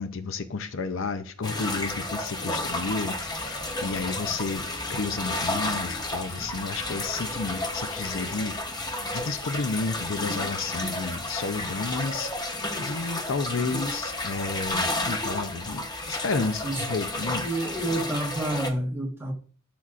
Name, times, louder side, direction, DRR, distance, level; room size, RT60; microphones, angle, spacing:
voice 1, 0.0-4.6 4.9-8.6 9.1-17.5, left 4 dB, 60° left, 0.6 m, -31 dB
sound 1, 1.4-18.7, left 2 dB, 20° left, 0.9 m, -32 dB
voice 2, 17.3-19.3, right 1 dB, 10° right, 1.4 m, -29 dB
12.0 x 6.0 x 2.5 m
head